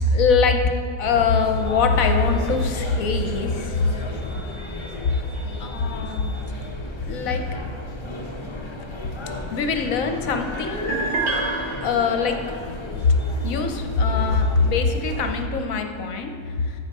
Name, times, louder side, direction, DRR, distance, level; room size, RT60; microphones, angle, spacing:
voice 1, 0.1-0.7 1.0-3.8 5.6-6.3 7.0-7.4 8.4-8.5 9.5-10.9 11.8-12.4 12.6-13.2 13.4-16.8, left 4 dB, 65° left, 6 dB, 1.1 m, -22 dB
sound 1, 1.0-15.4, left 1 dB, 30° left, 0.6 m, -33 dB
sound 2, 10.9-12.6, right 4 dB, 55° right, 0.8 m, -30 dB
13.5 x 4.8 x 5.3 m, 2.3 s
omnidirectional pair, 1.7 m